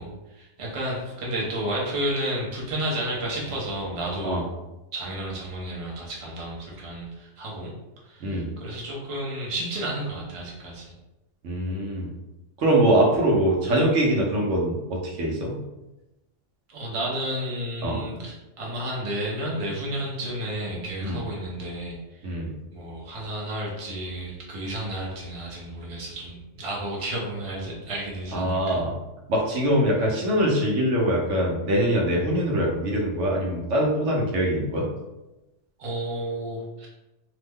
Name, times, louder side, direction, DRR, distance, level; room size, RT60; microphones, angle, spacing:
voice 1, 0.0-4.4 4.9-7.7 8.0-10.9 16.7-22.3 22.7-28.8 35.8-36.9, right 1 dB, 35° right, -4 dB, 0.7 m, -32 dB
voice 2, 11.4-12.1 12.6-15.6 17.8-18.0 21.0-21.2 22.2-22.5 28.3-28.9 29.3-34.9, right 1 dB, 70° right, -2 dB, 1.0 m, -23 dB
2.9 x 2.1 x 3.4 m, 0.99 s
omnidirectional pair, 1.3 m